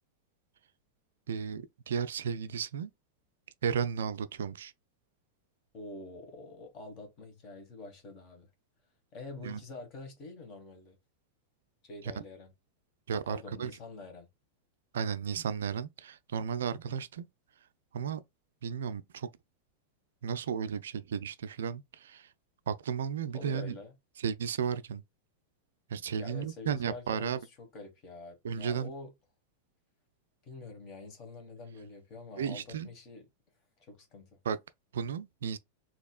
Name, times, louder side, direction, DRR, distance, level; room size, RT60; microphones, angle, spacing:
voice 1, 1.3-2.9 3.6-4.7 9.4-9.6 13.1-13.7 14.9-17.3 17.9-18.2 18.6-19.3 20.2-22.3 22.7-23.8 24.2-25.0 25.9-27.4 28.4-28.9 32.4-32.9 34.4-34.6 34.9-35.6, right 7 dB, 65° right, 0.3 m, -34 dB
voice 2, 5.7-8.5 9.1-11.0 11.8-12.5 13.2-14.3 23.3-23.9 26.2-29.1 30.4-33.3 33.9-34.3, left 3 dB, 35° left, 1.5 m, -46 dB
4.1 x 2.9 x 2.3 m
figure-of-eight pair, 90°, 0 cm